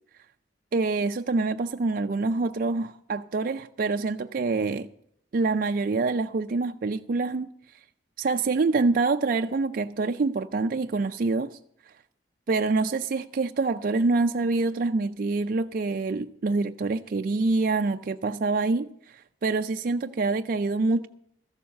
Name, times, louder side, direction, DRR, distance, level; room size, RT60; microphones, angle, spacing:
voice 1, 0.7-4.9 5.3-7.5 8.2-11.6 12.5-21.1, right 3 dB, 50° right, 0.4 m, -26 dB
14.0 x 7.0 x 8.4 m
head